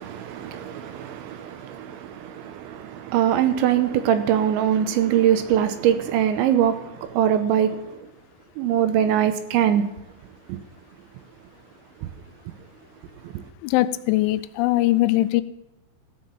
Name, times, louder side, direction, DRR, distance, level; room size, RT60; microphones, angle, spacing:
voice 1, 0.0-7.8 8.6-9.9, right 10 dB, 85° right, 2.9 m, -22 dB
voice 2, 13.6-15.4, left 16 dB, 85° left, 2.9 m, -21 dB
16.0 x 5.9 x 6.8 m
omnidirectional pair, 5.6 m